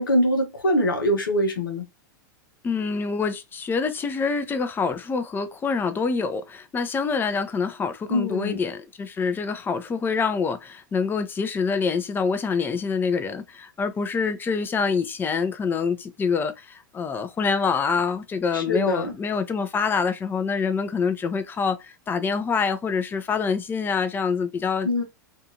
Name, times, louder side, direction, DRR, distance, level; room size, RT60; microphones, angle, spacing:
voice 1, 0.0-1.8 8.1-8.6 18.5-19.1 24.8-25.0, equal, 85° left, 0.8 m, -23 dB
voice 2, 2.6-24.9, left 5 dB, 20° left, 0.5 m, -26 dB
2.6 x 2.4 x 2.7 m
hypercardioid pair, 100°, 11 cm